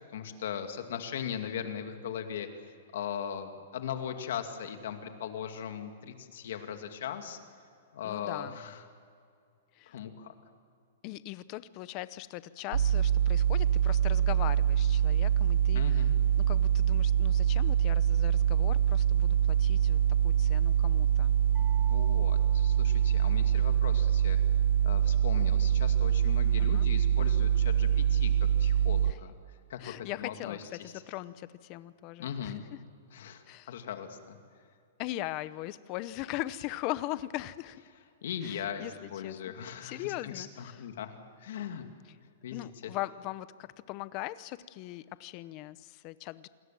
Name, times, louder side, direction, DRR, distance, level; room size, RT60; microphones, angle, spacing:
voice 1, 0.1-2.5 2.9-7.4 7.9-8.8 9.9-10.4 15.7-16.2 21.6-24.4 24.8-28.3 28.6-29.3 29.7-30.9 32.2-32.6 33.1-34.4 38.2-41.1 41.4-41.8 42.4-42.9, left 8 dB, 60° left, 6 dB, 2.3 m, -39 dB
voice 2, 8.0-8.6 9.7-10.0 11.0-16.0 16.5-20.0 20.2-21.3 26.6-26.9 29.1-29.2 29.8-32.6 33.5-33.7 35.0-37.8 38.4-39.5 39.8-40.9 42.5-46.5, left 16 dB, 30° left, 16 dB, 0.7 m, -40 dB
sound 1, 12.7-29.1, right 9 dB, 85° right, 0.5 m, -25 dB
sound 2, 21.5-23.7, right 6 dB, 5° right, 4.4 m, -52 dB
28.0 x 21.0 x 7.6 m, 2.3 s
hypercardioid pair, 170°, 0 cm